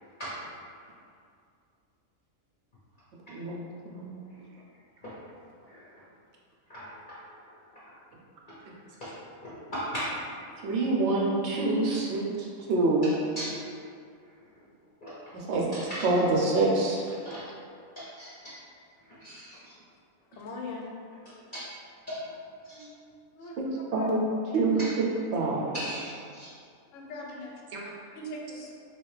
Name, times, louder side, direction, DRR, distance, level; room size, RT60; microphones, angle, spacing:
voice 1, 5.7-6.0 6.7-7.0 8.5-8.6 9.0-9.1 9.4-10.2 10.6-10.8 13.0-13.6 15.0-15.1 15.7-16.1 17.2-17.5 18.0-18.5 19.1-19.7 21.5-21.7 22.1-22.2 22.6-22.8 24.8-24.9 25.7-26.5, equal, 45° left, -10 dB, 0.7 m, -38 dB
voice 2, 10.6-12.3 12.7-13.1 15.3-15.6 16.0-17.0 23.6-23.7 23.9-24.2 24.5-25.1 25.3-25.7 27.7-27.8, right 2 dB, 65° right, -2 dB, 0.7 m, -25 dB
voice 3, 20.4-20.9 22.7-22.9 23.4-23.6 23.9-24.1 26.9-27.5 28.1-28.7, left 2 dB, 70° left, 0 dB, 0.9 m, -40 dB
3.3 x 2.9 x 3.1 m, 2.3 s
omnidirectional pair, 1.5 m